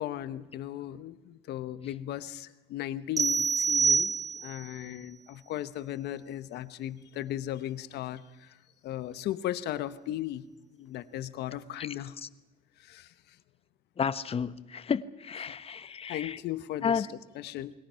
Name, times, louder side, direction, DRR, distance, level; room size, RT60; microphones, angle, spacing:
voice 1, 0.0-8.6 8.8-10.4 10.8-12.2 12.8-13.4 15.5-15.6 16.0-17.7, left 12 dB, 75° left, 1.3 m, -37 dB
sound 1, 3.2-4.7, right 5 dB, 20° right, 1.4 m, -26 dB
voice 2, 14.0-16.4 16.8-17.1, left 6 dB, 35° left, 1.1 m, -31 dB
29.5 x 21.5 x 5.8 m
cardioid pair, 110°, 17 cm